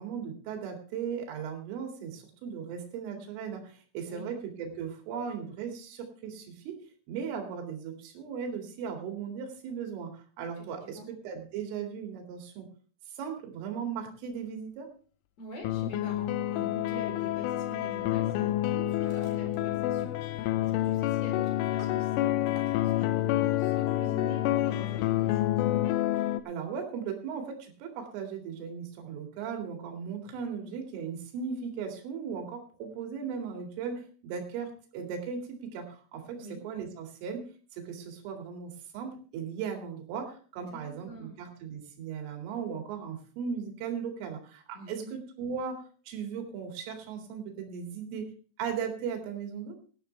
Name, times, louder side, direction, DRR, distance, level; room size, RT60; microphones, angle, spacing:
voice 1, 0.0-6.8 7.1-12.7 13.2-14.9 26.5-37.5 37.7-48.3 48.6-49.8, right 6 dB, 85° right, 3 dB, 4.9 m, -37 dB
voice 2, 10.6-11.1 15.4-25.6 36.4-36.6 40.7-41.4 44.7-45.1, equal, 35° left, 3 dB, 4.7 m, -45 dB
sound 1, 15.6-26.4, left 14 dB, 85° left, 3.3 m, -28 dB
Hammer, 18.1-18.3 18.6-19.6 19.8-20.4 20.6-21.0 21.4-22.7, right 1 dB, 10° left, 6.7 m, -55 dB
18.5 x 12.0 x 3.3 m, 0.40 s
omnidirectional pair, 5.6 m